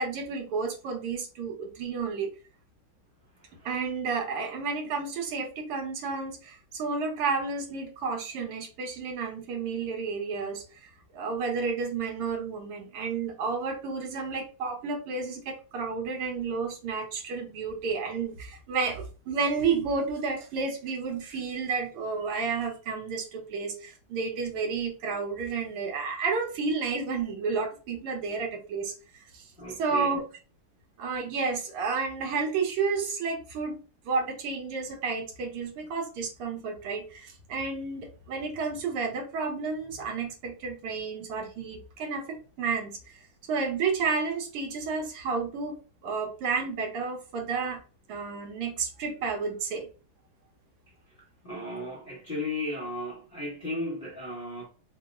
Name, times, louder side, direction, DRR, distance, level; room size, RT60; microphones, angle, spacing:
voice 1, 0.0-2.3 3.6-28.9 29.3-29.4 29.8-30.2 31.0-33.8 34.1-43.2 43.5-47.8 48.1-49.9, right 4 dB, 85° right, 1.9 m, -31 dB
voice 2, 3.3-3.7 29.6-30.2 51.4-54.7, left 1 dB, 50° left, 0.6 m, -35 dB
3.9 x 2.0 x 3.5 m
omnidirectional pair, 2.4 m